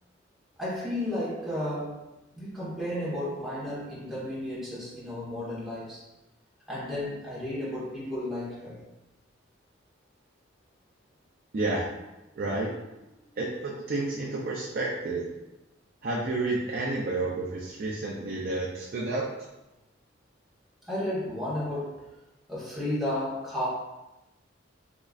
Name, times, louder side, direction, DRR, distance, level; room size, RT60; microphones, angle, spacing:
voice 1, 0.6-6.0 6.7-8.8 20.8-22.0 22.5-23.7, left 1 dB, ahead, -10 dB, 1.3 m, -33 dB
voice 2, 11.5-11.9 12.4-12.7 13.4-15.3 16.0-19.3, right 2 dB, 50° right, -3 dB, 0.4 m, -30 dB
3.7 x 3.0 x 2.4 m, 0.98 s
head